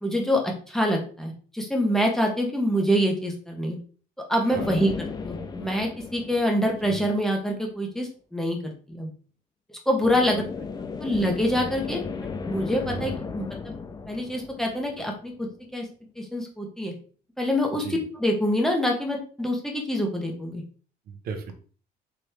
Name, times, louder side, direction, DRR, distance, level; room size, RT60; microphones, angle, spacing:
voice 1, 0.0-3.8 4.3-8.6 8.9-9.1 9.7-10.4 11.0-12.0 12.4-13.7 14.1-15.8 16.2-16.9 17.4-20.6, equal, ahead, 1 dB, 1.3 m, -26 dB
sound 1, 4.5-7.3 10.1-15.5, left 5 dB, 25° left, 0.5 m, -35 dB
voice 2, 12.8-13.2 17.8-18.0 21.1-21.5, right 5 dB, 60° right, 7 dB, 1.0 m, -36 dB
4.7 x 3.0 x 3.4 m, 0.41 s
cardioid pair, 110°, 17 cm